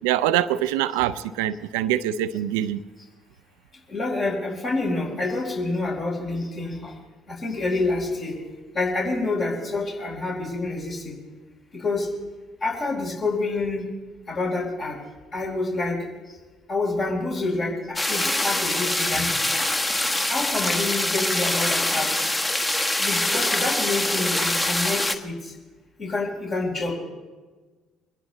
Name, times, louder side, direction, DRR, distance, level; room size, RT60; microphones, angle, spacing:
voice 1, 0.0-2.8, right 12 dB, 80° right, 14 dB, 0.5 m, -24 dB
voice 2, 3.9-6.9 7.4-8.3 8.7-11.2 11.7-12.1 12.6-13.8 14.3-15.0 15.3-16.0 16.7-19.3 20.3-22.1 23.0-25.4 26.0-26.9, left 3 dB, 50° left, -3 dB, 4.3 m, -27 dB
sound 1, 18.0-25.2, left 1 dB, 20° left, 1.3 m, -24 dB
23.0 x 10.5 x 4.1 m, 1.3 s
hypercardioid pair, 60°, 0 cm